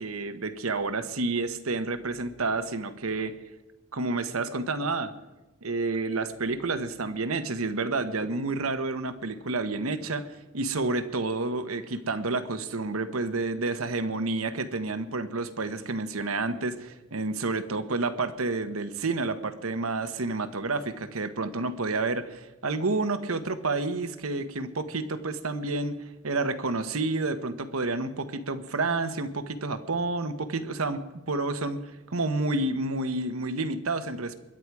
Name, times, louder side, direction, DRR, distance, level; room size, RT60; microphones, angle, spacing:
voice 1, 0.0-3.4 3.9-5.1 5.6-31.0 31.3-31.8 32.1-34.3, right 3 dB, 85° right, 9 dB, 1.2 m, -29 dB
22.0 x 10.5 x 4.8 m, 1.1 s
head